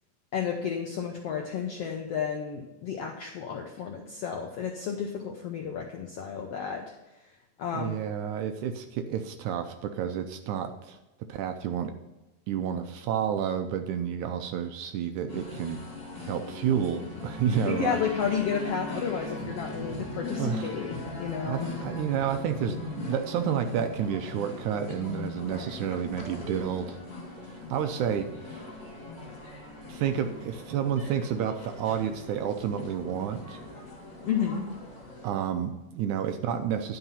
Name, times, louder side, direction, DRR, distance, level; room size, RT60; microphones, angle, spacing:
voice 1, 0.3-6.9 7.6-8.0 17.7-21.7 34.2-34.7, left 7 dB, 75° left, 2 dB, 1.4 m, -32 dB
voice 2, 7.7-11.0 11.3-11.9 12.5-15.8 16.2-18.0 20.4-20.7 21.4-27.0 27.5-28.7 29.9-33.6 35.2-37.0, right 8 dB, 75° right, 7 dB, 1.9 m, -30 dB
sound 1, 15.3-35.3, left 2 dB, 35° left, 3.4 m, -39 dB
11.0 x 5.8 x 5.6 m, 1.0 s
omnidirectional pair, 3.8 m